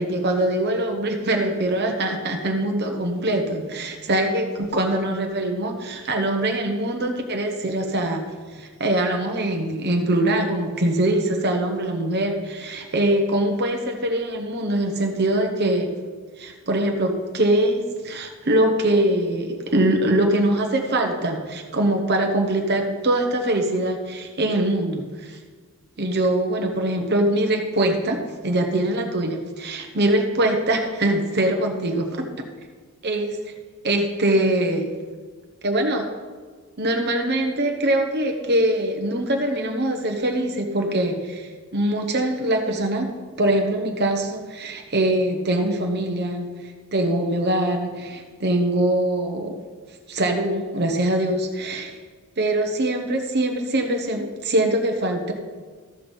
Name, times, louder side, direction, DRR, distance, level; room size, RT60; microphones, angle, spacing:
voice 1, 0.0-8.3 8.5-15.9 16.4-25.4 26.0-28.2 28.4-32.2 33.0-33.4 33.8-34.9 35.6-36.0 36.8-43.1 43.4-46.5 46.9-49.5 50.1-52.0 52.4-55.3, right 1 dB, 50° right, 3 dB, 1.0 m, -23 dB
14.0 x 5.8 x 5.3 m, 1.5 s
head